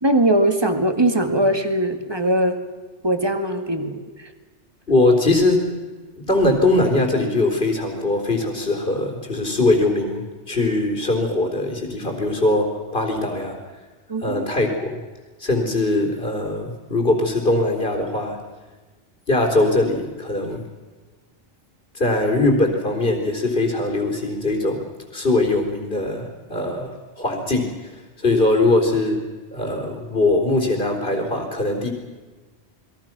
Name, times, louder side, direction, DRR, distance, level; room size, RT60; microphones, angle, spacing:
voice 1, 0.0-2.6 3.0-4.0 14.1-14.4, right 1 dB, 20° right, 7 dB, 2.1 m, -20 dB
voice 2, 4.9-5.8 6.1-13.6 14.2-14.9 15.4-18.4 19.3-20.7 21.9-27.9 28.2-31.9, left 2 dB, 50° left, 0 dB, 4.1 m, -21 dB
30.0 x 21.5 x 6.1 m, 1.3 s
omnidirectional pair, 1.2 m